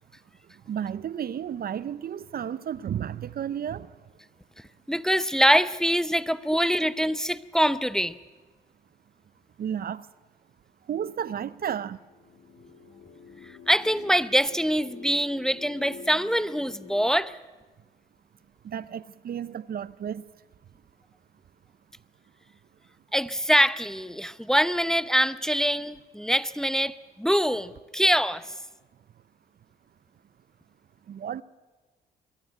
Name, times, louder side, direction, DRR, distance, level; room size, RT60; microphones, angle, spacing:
voice 1, 0.7-3.9 9.6-10.1 10.9-12.0 18.6-20.2 31.1-31.4, right 9 dB, 50° right, 0.6 m, -32 dB
voice 2, 4.9-8.2 13.7-17.4 23.1-28.4, equal, 5° left, 0.7 m, -24 dB
sound 1, 11.9-17.1, left 6 dB, 65° left, 1.7 m, -47 dB
22.0 x 15.0 x 9.1 m
supercardioid pair, 60°, 19 cm